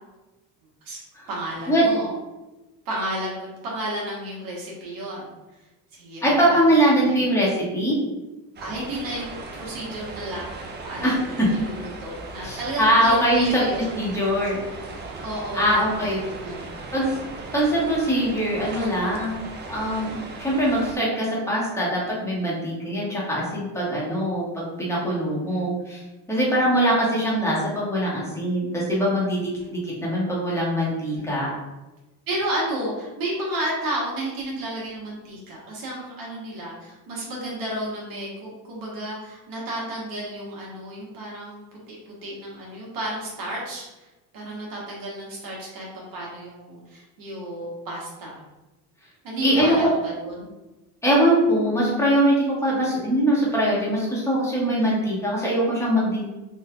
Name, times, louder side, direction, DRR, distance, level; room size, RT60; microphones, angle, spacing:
voice 1, 1.3-2.1 2.8-5.3 5.9-6.6 6.9-7.3 8.6-13.9 15.2-16.7 24.0-24.3 25.5-25.6 29.5-29.7 31.1-31.3 32.3-41.6 41.9-44.1 44.3-48.4 49.2-50.5 54.8-55.0, right 1 dB, 55° right, -4 dB, 1.0 m, -32 dB
voice 2, 6.2-8.0 11.0-11.5 12.4-14.6 15.5-16.2 16.9-17.2 17.5-26.0 26.3-29.5 29.8-31.5 49.4-49.8 51.0-56.2, equal, 5° left, -6 dB, 1.2 m, -22 dB
sound 1, 8.6-21.0, right 3 dB, 25° right, 0.5 m, -37 dB
3.7 x 2.5 x 2.3 m, 1.1 s
cardioid pair, 110°, 42 cm